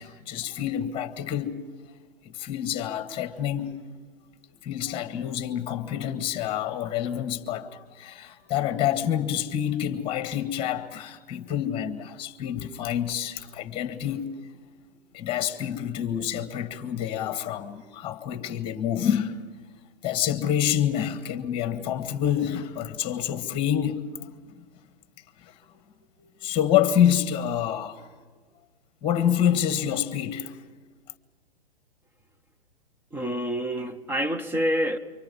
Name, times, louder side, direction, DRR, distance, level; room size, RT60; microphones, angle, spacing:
voice 1, 0.0-1.6 2.2-3.8 4.6-14.4 15.1-19.5 20.0-24.3 25.4-25.5 26.2-28.1 29.0-30.6, left 10 dB, 20° left, 1.5 m, -27 dB
voice 2, 33.1-35.0, equal, 5° right, 1.0 m, -27 dB
29.0 x 24.5 x 5.5 m
hypercardioid pair, 130°, 29 cm